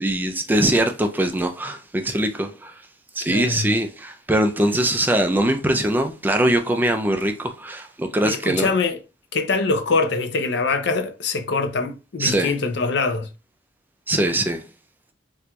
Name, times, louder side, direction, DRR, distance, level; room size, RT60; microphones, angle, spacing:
voice 1, 0.0-2.7 3.2-8.7 12.2-12.5 14.1-14.6, right 1 dB, 10° right, 0.3 m, -22 dB
voice 2, 3.3-3.7 8.2-9.0 9.3-13.3, left 4 dB, 65° left, 0.5 m, -23 dB
4.3 x 2.5 x 2.2 m
head